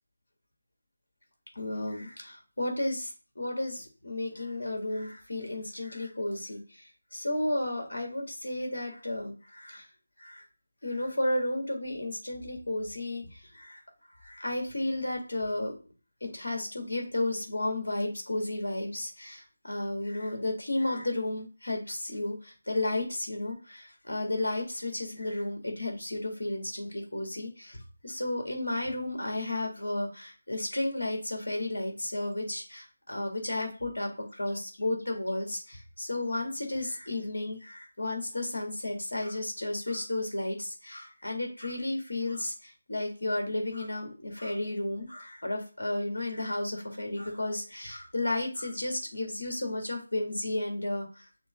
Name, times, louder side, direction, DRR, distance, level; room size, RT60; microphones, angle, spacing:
voice 1, 1.5-9.9 10.2-10.4 10.8-13.8 14.2-15.7 16.2-51.3, left 1 dB, 60° left, 2 dB, 1.7 m, -33 dB
6.3 x 2.3 x 3.4 m, 0.35 s
figure-of-eight pair, 160°, 0 cm